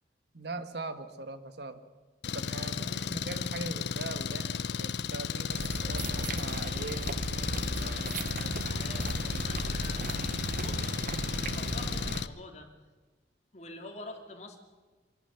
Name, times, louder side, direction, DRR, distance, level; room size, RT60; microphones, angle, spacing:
voice 1, 0.3-1.8 2.3-7.1, right 2 dB, 65° right, 10 dB, 1.4 m, -40 dB
Engine, 2.2-12.3, left 6 dB, 70° left, 0.7 m, -34 dB
voice 2, 2.8-3.2 8.1-11.1 11.3-12.7 13.5-14.6, left 2 dB, 40° left, 2 dB, 2.7 m, -47 dB
sound 1, 5.5-12.2, right 2 dB, 50° right, 0.8 m, -36 dB
24.5 x 11.5 x 9.9 m, 1.3 s
head